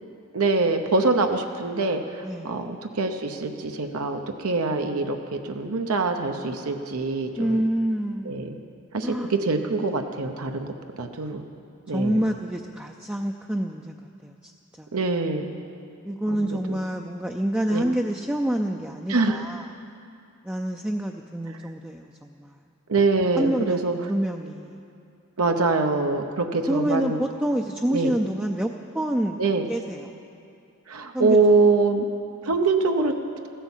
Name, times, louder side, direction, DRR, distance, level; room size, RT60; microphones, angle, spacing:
voice 1, 0.3-7.6 8.3-8.5 8.9-10.7 11.0-11.4 11.9-12.2 14.9-15.5 16.3-16.8 17.7-17.8 19.1-19.4 22.9-23.9 25.4-27.2 27.9-28.1 29.4-29.7 30.9-32.1 32.4-33.1, right 3 dB, 80° right, 5 dB, 0.8 m, -24 dB
voice 2, 2.2-2.7 7.4-8.5 9.0-9.3 11.9-14.5 14.8-14.9 16.0-19.7 20.4-22.6 23.4-24.8 26.7-30.1 31.1-31.4, right 1 dB, 5° right, 2 dB, 0.4 m, -27 dB
15.5 x 10.0 x 7.3 m, 2.6 s
head